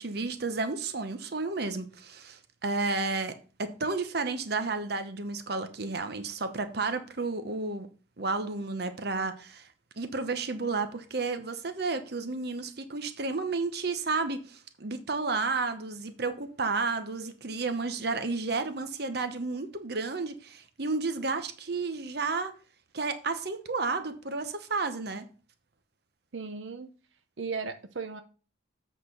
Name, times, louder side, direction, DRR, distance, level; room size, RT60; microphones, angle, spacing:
voice 1, 0.0-7.9 8.2-9.7 10.0-22.5 22.9-25.3, right 3 dB, 60° right, 0.9 m, -32 dB
voice 2, 26.3-26.9 27.4-28.2, right 4 dB, 90° right, 0.8 m, -36 dB
7.9 x 4.4 x 6.5 m
head